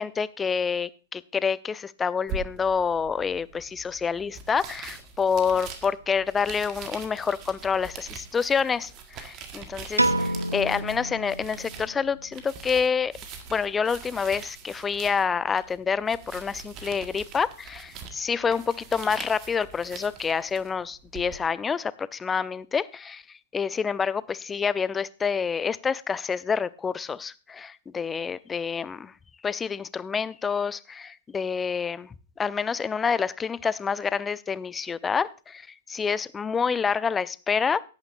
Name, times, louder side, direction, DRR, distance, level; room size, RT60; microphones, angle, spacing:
voice 1, 0.0-13.1 13.5-23.2 23.5-29.1 29.4-37.8, left 6 dB, 15° left, 19 dB, 0.5 m, -28 dB
sound 1, 2.3-21.4, right 5 dB, 30° right, 1.6 m, -43 dB
Piano, 10.0-12.2, right 1 dB, 85° right, 0.6 m, -28 dB
17.0 x 8.9 x 2.6 m, 0.34 s
figure-of-eight pair, 105°, 0 cm